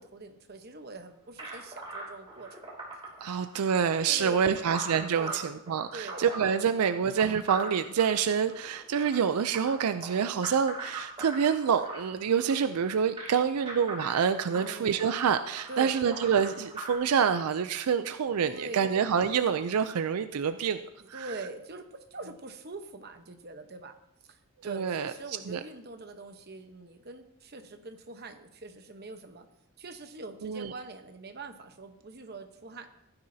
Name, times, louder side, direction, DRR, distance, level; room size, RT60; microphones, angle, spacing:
voice 1, 0.0-2.6 4.1-4.7 5.2-5.5 5.9-6.3 14.5-15.0 15.7-15.9 18.4-18.9 21.0-23.9 24.2-29.5 29.8-32.9, right 2 dB, 45° right, 7 dB, 1.0 m, -43 dB
sound 1, 1.4-17.0, right 2 dB, 25° right, 2.8 m, -41 dB
voice 2, 3.2-20.8 21.1-21.3 24.7-25.1 25.5-25.6 30.4-30.7, right 7 dB, 85° right, 10 dB, 0.4 m, -27 dB
15.5 x 9.7 x 2.7 m, 0.84 s
head